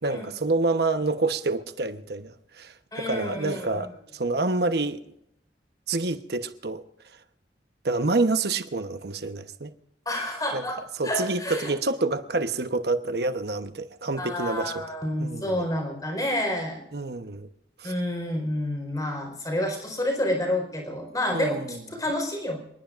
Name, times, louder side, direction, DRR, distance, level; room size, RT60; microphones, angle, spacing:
voice 1, 0.0-5.0 5.9-6.8 7.8-9.7 10.5-10.7 11.0-14.8 15.2-15.7 16.9-17.5 17.8-17.9 21.3-21.8, right 3 dB, 65° right, 1.1 m, -27 dB
voice 2, 2.9-3.9 10.0-10.8 11.0-11.7 14.2-16.8 17.8-22.6, left 1 dB, 20° left, 4.5 m, -29 dB
27.5 x 19.5 x 2.5 m
head